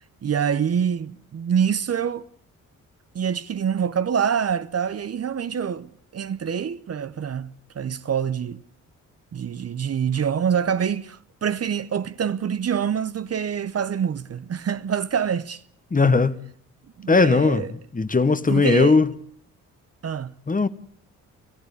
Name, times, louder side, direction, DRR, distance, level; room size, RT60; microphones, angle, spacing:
voice 1, 0.2-2.2 3.1-8.6 9.3-15.6 16.0-16.1 17.0-17.7 18.5-19.0 20.0-20.3, right 7 dB, 45° right, 0.8 m, -26 dB
voice 2, 15.9-16.4 17.1-17.6 17.9-19.1 20.5-20.7, left 4 dB, 25° left, 1.3 m, -18 dB
26.5 x 15.0 x 8.4 m
supercardioid pair, 60°, 34 cm